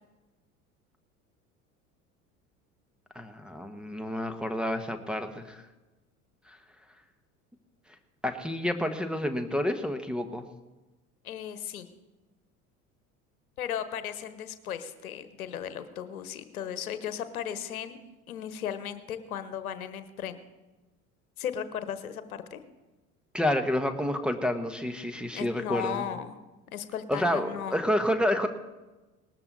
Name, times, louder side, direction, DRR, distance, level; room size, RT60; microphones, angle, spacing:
voice 1, 3.1-5.6 6.5-6.6 8.2-10.5 23.3-26.0 27.1-28.5, left 1 dB, ahead, 4 dB, 1.3 m, -29 dB
voice 2, 11.2-11.9 13.6-18.0 18.3-20.4 21.4-22.6 25.3-26.4 26.7-27.8, left 9 dB, 75° left, 12 dB, 1.2 m, -36 dB
19.0 x 13.0 x 4.1 m, 1.1 s
figure-of-eight pair, 70°, 44 cm